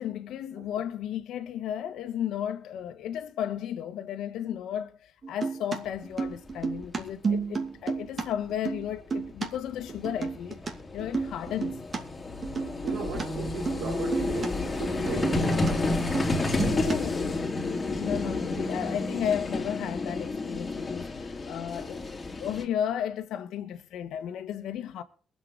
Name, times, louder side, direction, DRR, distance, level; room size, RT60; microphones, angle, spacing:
voice 1, 0.0-10.6 10.9-11.8 16.5-17.6 18.0-22.1 22.4-25.0, left 9 dB, 80° left, 1.3 m, -34 dB
sound 1, 5.2-8.3 8.5-9.5 9.9-10.7 11.0-12.0 12.4-13.3 13.7-13.9 14.1-14.5 14.8-15.7 16.0-17.2, right 5 dB, 40° right, 2.5 m, -31 dB
Vehicle, 6.5-6.6 6.8-7.0 9.0-9.1 9.3-22.6, left 2 dB, 25° left, 3.1 m, -31 dB
voice 2, 12.8-16.0, right 6 dB, 75° right, 3.6 m, -36 dB
23.0 x 7.9 x 3.9 m
cardioid pair, 90°, 0 cm